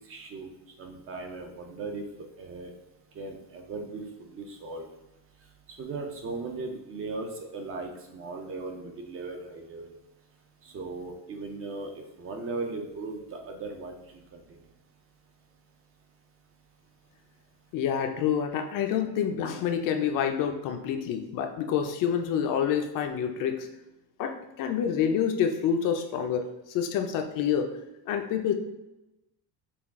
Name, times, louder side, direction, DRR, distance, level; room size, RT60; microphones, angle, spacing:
voice 1, 0.1-0.5 0.8-2.7 3.2-4.0 4.3-4.9 5.8-9.9 10.7-11.9 12.2-13.9, right 3 dB, 35° right, 3 dB, 0.5 m, -37 dB
voice 2, 17.7-23.7 24.2-27.7 28.1-28.6, left 8 dB, 50° left, 6 dB, 0.5 m, -27 dB
5.9 x 2.3 x 3.5 m, 0.95 s
cardioid pair, 170°, 42 cm